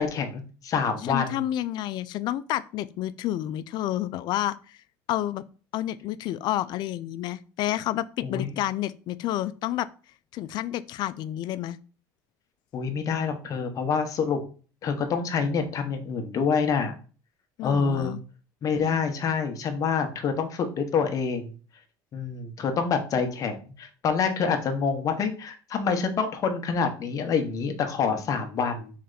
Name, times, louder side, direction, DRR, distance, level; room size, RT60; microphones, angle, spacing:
voice 1, 0.0-1.4 8.2-8.5 12.7-14.4 14.8-16.9 17.6-18.2 18.6-21.5 22.1-28.9, left 5 dB, 40° left, 6 dB, 0.9 m, -27 dB
voice 2, 1.1-4.8 5.1-5.4 5.7-9.9 10.3-11.8 17.6-18.2, left 13 dB, 60° left, 15 dB, 0.3 m, -30 dB
4.2 x 3.2 x 3.9 m, 0.38 s
cardioid pair, 120°, 9 cm